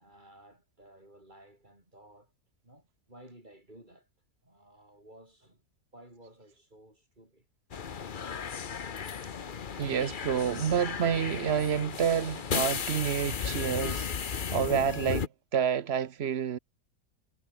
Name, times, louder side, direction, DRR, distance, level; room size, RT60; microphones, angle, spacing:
voice 1, 0.0-2.3 2.6-4.1 4.4-5.6 5.9-7.5, right 1 dB, 30° right, 7.9 m, -55 dB
sound 1, 7.7-15.3, left 6 dB, 40° left, 1.0 m, -35 dB
voice 2, 9.8-16.6, right 8 dB, 50° right, 1.0 m, -29 dB
omnidirectional pair, 1.5 m